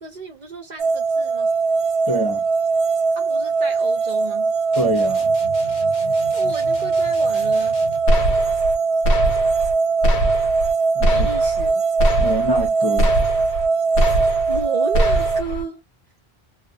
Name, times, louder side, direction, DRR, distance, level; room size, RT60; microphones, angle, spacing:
voice 1, 0.0-1.5 3.2-4.5 6.3-7.8 11.1-11.8 14.3-15.8, right 5 dB, 50° right, 0.6 m, -33 dB
sound 1, 0.8-15.4, right 4 dB, 80° right, 0.9 m, -20 dB
voice 2, 2.1-2.4 4.8-5.3 10.9-11.3 12.2-13.1, right 1 dB, 30° left, 0.4 m, -25 dB
sound 2, 4.7-8.1, left 3 dB, 55° left, 0.8 m, -38 dB
sound 3, 8.1-8.8 9.0-9.7 10.0-10.7 11.0-11.7 12.0-12.7 13.0-13.7 14.0-14.7 14.9-15.6, right 1 dB, 80° left, 1.1 m, -21 dB
2.4 x 2.0 x 2.6 m
omnidirectional pair, 1.1 m